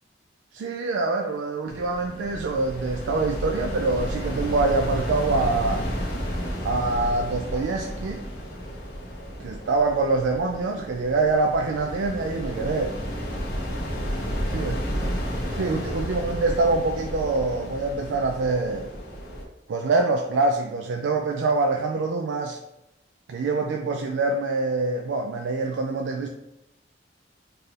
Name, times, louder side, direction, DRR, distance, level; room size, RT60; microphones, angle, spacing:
voice 1, 0.5-5.9 6.6-8.2 9.4-13.0 14.5-14.8 15.5-18.9 19.7-22.6 23.3-26.3, right 3 dB, 85° right, 3 dB, 0.4 m, -25 dB
sound 1, 1.7-19.5, equal, 60° left, 1.1 m, -32 dB
4.5 x 2.5 x 3.3 m, 0.89 s
head